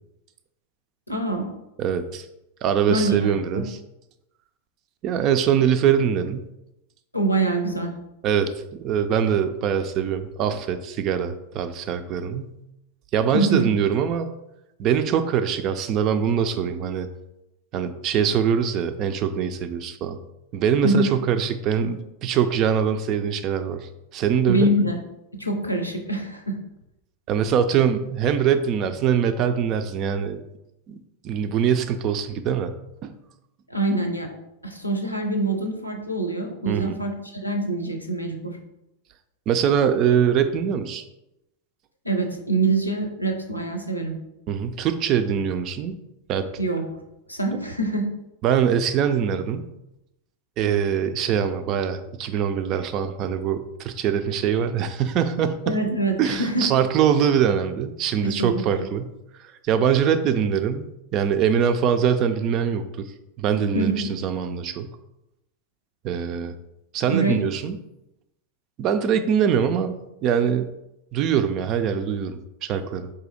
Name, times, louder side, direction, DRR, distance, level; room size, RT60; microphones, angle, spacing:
voice 1, 1.1-1.5 2.9-3.6 7.1-7.9 13.3-13.7 20.8-21.1 24.5-25.0 25.3-26.6 33.7-34.3 34.6-37.1 37.4-38.6 42.0-44.2 46.6-46.8 47.3-48.0 55.6-56.7 58.2-58.9 63.7-64.1 67.1-67.4, right 2 dB, 85° left, 3 dB, 0.6 m, -24 dB
voice 2, 1.8-2.3 2.6-3.8 5.0-6.5 8.2-12.6 13.1-14.3 14.8-17.1 17.7-20.2 20.5-24.7 27.3-30.4 30.9-31.0 31.2-32.7 33.0-33.2 36.7-37.0 39.5-41.0 44.5-46.0 46.3-46.5 48.4-49.7 50.6-55.7 56.2-59.1 59.4-63.1 63.4-63.9 64.2-64.9 66.0-66.5 66.9-67.8 68.8-69.9 70.2-70.7 71.1-73.1, right 8 dB, 35° right, 10 dB, 0.4 m, -23 dB
4.0 x 2.7 x 3.8 m, 0.87 s
figure-of-eight pair, 90°, 0 cm